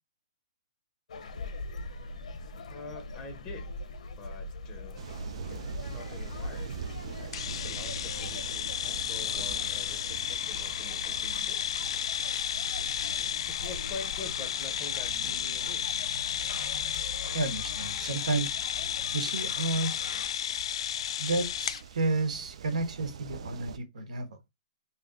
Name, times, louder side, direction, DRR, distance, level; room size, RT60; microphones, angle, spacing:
sound 1, 1.1-20.3, left 3 dB, 70° left, 0.8 m, -43 dB
voice 1, 2.7-3.7 4.2-5.0 5.9-6.8 7.2-11.6 13.5-15.9, left 4 dB, 15° left, 0.7 m, -46 dB
sound 2, 5.0-23.8, right 7 dB, 55° right, 0.3 m, -45 dB
sound 3, 7.3-21.8, left 9 dB, 50° left, 0.3 m, -33 dB
voice 2, 17.3-18.6 19.1-19.9 21.2-24.4, right 3 dB, 80° right, 1.1 m, -31 dB
3.0 x 2.8 x 3.6 m
hypercardioid pair, 170°, 4 cm